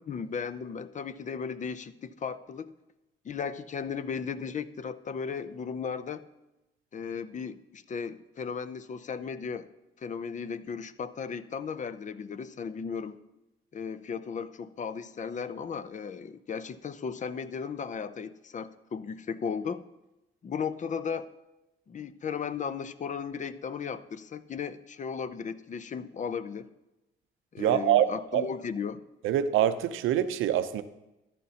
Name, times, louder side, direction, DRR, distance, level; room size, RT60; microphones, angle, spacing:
voice 1, 0.0-2.7 3.2-6.2 6.9-9.7 10.0-13.2 13.7-19.8 20.4-21.3 21.9-26.7 27.5-29.0, left 6 dB, 40° left, 14 dB, 0.6 m, -36 dB
voice 2, 27.6-28.4 29.2-30.8, right 11 dB, 85° right, 11 dB, 0.6 m, -25 dB
13.5 x 11.5 x 2.8 m, 0.96 s
cardioid pair, 90°, 20 cm